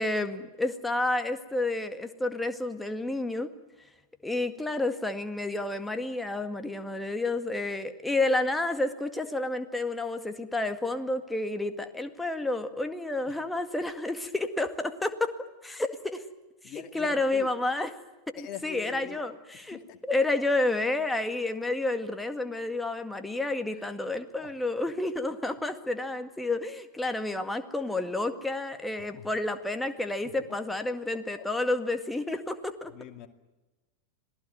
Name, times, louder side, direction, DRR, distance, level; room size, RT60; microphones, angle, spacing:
voice 1, 0.0-3.5 4.2-15.3 15.6-16.2 16.6-17.9 18.3-19.8 20.1-32.9, left 2 dB, 5° left, 8 dB, 1.9 m, -30 dB
voice 2, 16.6-17.5 18.4-19.2 19.5-20.0 23.8-23.9 24.4-24.5 29.0-29.3 31.3-31.5 32.9-33.3, left 11 dB, 40° left, 7 dB, 2.2 m, -43 dB
26.5 x 18.0 x 9.3 m, 1.1 s
figure-of-eight pair, 90°, 0 cm